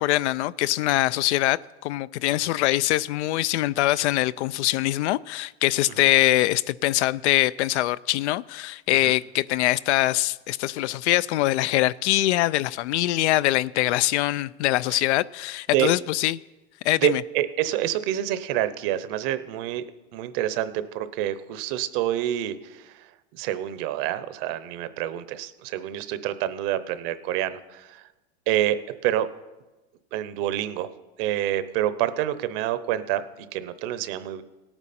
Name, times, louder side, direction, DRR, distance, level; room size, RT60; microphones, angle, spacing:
voice 1, 0.0-16.4 16.8-17.2, left 16 dB, 85° left, 0.5 m, -23 dB
voice 2, 17.0-19.8 20.1-28.1 28.5-29.3 30.1-30.9 31.2-34.4, right 12 dB, 55° right, 0.8 m, -27 dB
17.5 x 9.0 x 4.2 m
supercardioid pair, 140°, 33 cm